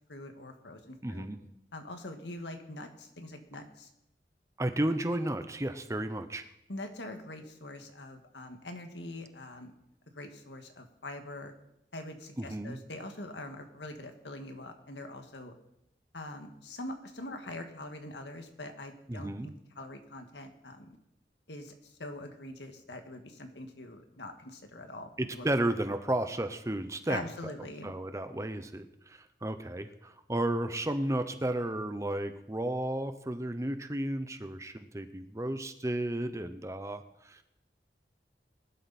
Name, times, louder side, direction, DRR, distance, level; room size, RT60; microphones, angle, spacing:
voice 1, 0.1-1.3 1.7-3.9 6.7-9.7 10.1-11.5 11.9-15.5 16.1-21.0 21.5-25.5 27.1-28.0, left 1 dB, 85° left, 5 dB, 1.9 m, -43 dB
voice 2, 1.0-1.4 4.6-6.4 12.4-12.8 19.1-19.5 25.2-27.5 27.8-37.4, right 1 dB, 15° right, 9 dB, 0.8 m, -33 dB
20.5 x 11.5 x 4.3 m, 0.81 s
head